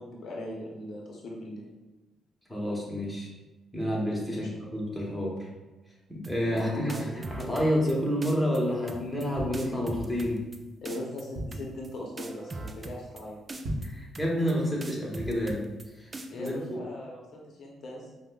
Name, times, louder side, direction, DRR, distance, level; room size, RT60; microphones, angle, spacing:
voice 1, 0.0-1.7 4.3-4.5 6.5-7.1 10.8-13.6 16.3-18.1, left 1 dB, 60° left, -2 dB, 0.7 m, -39 dB
voice 2, 2.5-3.3 3.7-5.5 6.1-10.4 13.8-15.7 16.0-16.8, equal, 5° left, -4 dB, 0.9 m, -29 dB
sound 1, 6.2-6.6 6.9-7.9 8.2-8.6 8.9-9.3 9.5-10.6 10.8-11.2 11.5-11.9 12.2-13.2 13.5-13.9 14.1-14.5 14.8-15.8 16.1-16.5, right 2 dB, 30° right, 0.3 m, -40 dB
sound 2, 9.3-10.3 10.8-10.9 11.1-11.8 12.3-12.5 12.8-12.9 13.5-14.1 14.5-14.6, equal, 60° right, 0.9 m, -37 dB
5.1 x 2.1 x 2.3 m, 1.1 s
cardioid pair, 90°, 0 cm